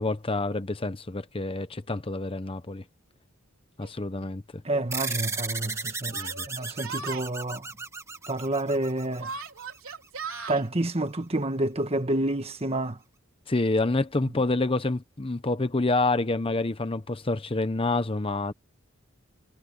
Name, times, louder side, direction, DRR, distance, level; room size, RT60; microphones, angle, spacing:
voice 1, 0.0-2.8 3.8-4.4 6.1-6.4 13.5-18.5, left 2 dB, 25° left, 0.9 m, -27 dB
Yell, 3.8-3.9 4.9-5.0 6.1-7.3 9.2-10.6, right 5 dB, 75° right, 3.9 m, -37 dB
voice 2, 4.6-6.2 6.5-7.6 8.3-9.3 10.5-13.0, right 1 dB, 30° right, 1.5 m, -28 dB
sound 1, 4.9-9.8, right 4 dB, 15° right, 1.4 m, -35 dB
head